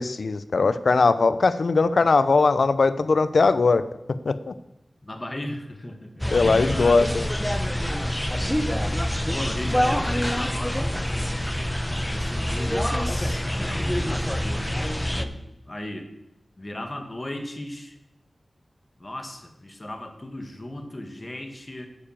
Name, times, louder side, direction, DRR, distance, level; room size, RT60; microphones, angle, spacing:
voice 1, 0.0-3.8 4.3-4.5 6.3-7.3, left 4 dB, 75° left, 14 dB, 0.6 m, -20 dB
voice 2, 5.0-7.0 8.3-8.6 9.3-11.5 11.9-14.8 15.1-15.4 15.7-16.1 16.6-18.0 19.0-21.9, left 1 dB, 30° left, 6 dB, 1.8 m, -36 dB
sound 1, 6.2-15.2, equal, 10° left, 0.9 m, -26 dB
9.6 x 7.0 x 7.3 m, 0.89 s
wide cardioid pair, 60°, 0 cm